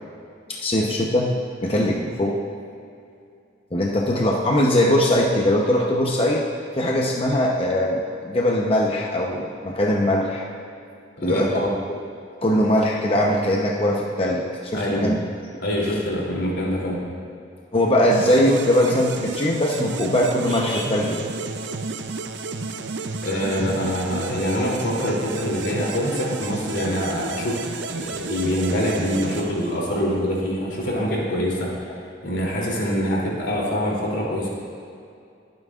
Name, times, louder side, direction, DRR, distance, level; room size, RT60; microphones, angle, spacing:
voice 1, 0.5-1.3 1.6-2.4 3.7-6.4 6.7-10.4 11.2-11.5 12.4-15.2 17.7-21.2, left 1 dB, 30° left, -1 dB, 0.9 m, -21 dB
voice 2, 11.2-11.7 14.7-15.2 15.6-17.1 23.2-32.0 32.2-34.5, equal, 90° left, -3 dB, 3.1 m, -25 dB
sound 1, 18.1-30.2, right 4 dB, 70° right, 0.6 m, -32 dB
22.0 x 9.4 x 2.5 m, 2.5 s
head